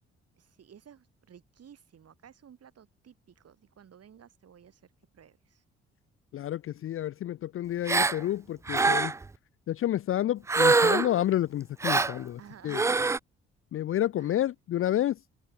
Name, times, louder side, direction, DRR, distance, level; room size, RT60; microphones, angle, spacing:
voice 1, 0.4-5.6 12.4-13.1 14.2-14.5, right 8 dB, 50° right, 3.2 m, -54 dB
voice 2, 6.3-9.1 9.7-12.4 12.6-12.8 13.7-15.2, left 12 dB, 45° left, 0.5 m, -29 dB
Gasp, 7.9-8.2 8.7-9.3 10.5-11.2 11.8-12.2 12.7-13.2, right 3 dB, 10° right, 0.3 m, -24 dB
hypercardioid pair, 45°, 31 cm